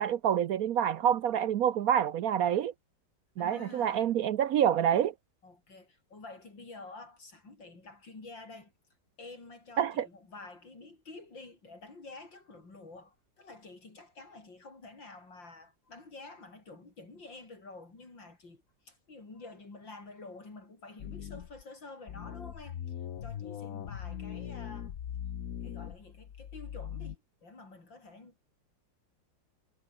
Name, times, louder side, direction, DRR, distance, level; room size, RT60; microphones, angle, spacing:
voice 1, 0.0-2.7 3.4-5.1 9.8-10.1, right 9 dB, 65° right, 1.0 m, -27 dB
voice 2, 3.4-4.1 5.4-8.7 9.2-22.8 23.2-24.9 25.6-28.5, left 3 dB, 90° left, 6.3 m, -49 dB
sound 1, 21.0-21.6 22.1-27.2, left 9 dB, 55° left, 1.3 m, -40 dB
omnidirectional pair, 2.0 m